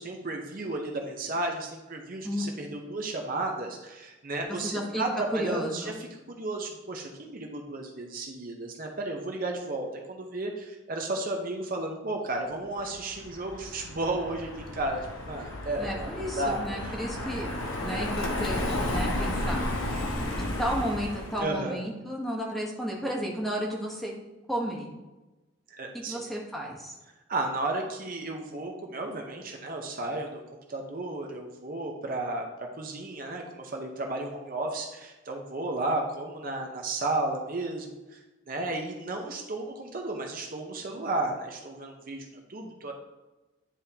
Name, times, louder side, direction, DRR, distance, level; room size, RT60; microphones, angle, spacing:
voice 1, 0.0-17.3 21.4-21.8 25.7-26.2 27.3-30.4 30.7-32.4 32.8-38.2 38.5-42.9, right 2 dB, 45° right, 2 dB, 0.7 m, -33 dB
voice 2, 4.5-5.0 5.3-6.0 15.8-17.5 17.8-19.6 20.6-24.1 24.5-24.9 25.9-27.0, equal, ahead, -2 dB, 1.0 m, -33 dB
Car passing by, 12.9-21.5, left 1 dB, 85° left, 1.0 m, -32 dB
9.9 x 3.6 x 2.8 m, 1.1 s
head